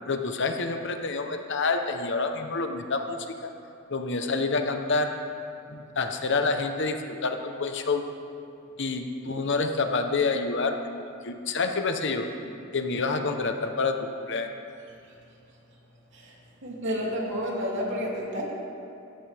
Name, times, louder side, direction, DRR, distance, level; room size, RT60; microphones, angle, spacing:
voice 1, 0.1-3.5 3.9-5.1 5.7-8.0 8.8-12.3 12.7-14.5, left 3 dB, 60° left, 6 dB, 1.0 m, -28 dB
voice 2, 16.6-18.4, equal, 60° right, -3 dB, 3.0 m, -30 dB
17.0 x 14.5 x 3.6 m, 2.7 s
head